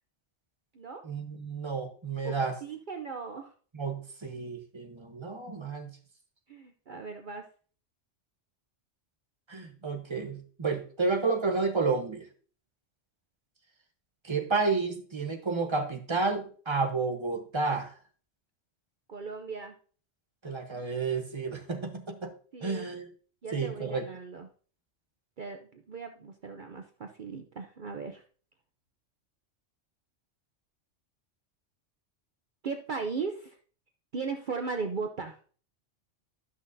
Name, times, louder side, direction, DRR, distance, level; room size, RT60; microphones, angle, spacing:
voice 1, 1.0-2.5 3.7-5.9 9.5-12.2 14.2-17.9 20.4-22.3 22.6-23.1 23.5-24.0, right 4 dB, 25° right, 4 dB, 1.1 m, -31 dB
voice 2, 2.6-3.5 6.5-7.4 19.1-19.7 22.5-22.9 23.4-24.5 25.4-28.2 32.6-33.6 34.1-35.4, right 4 dB, 50° right, 5 dB, 0.7 m, -37 dB
12.5 x 6.1 x 2.7 m, 0.43 s
omnidirectional pair, 1.3 m